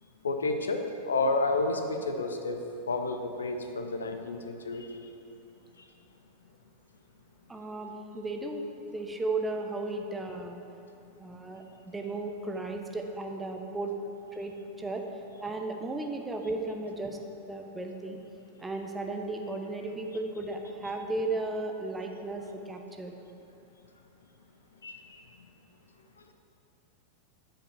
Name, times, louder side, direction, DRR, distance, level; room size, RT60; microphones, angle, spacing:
voice 1, 0.2-2.6 2.9-4.9 24.8-25.0, left 2 dB, 70° left, 5 dB, 0.6 m, -30 dB
voice 2, 7.5-8.7 8.9-10.6 11.2-13.9 14.3-15.0 15.4-17.2 17.5-18.2 18.6-23.2, right 2 dB, 10° right, 3 dB, 0.7 m, -35 dB
8.7 x 5.1 x 5.9 m, 2.7 s
figure-of-eight pair, 90°, 0 cm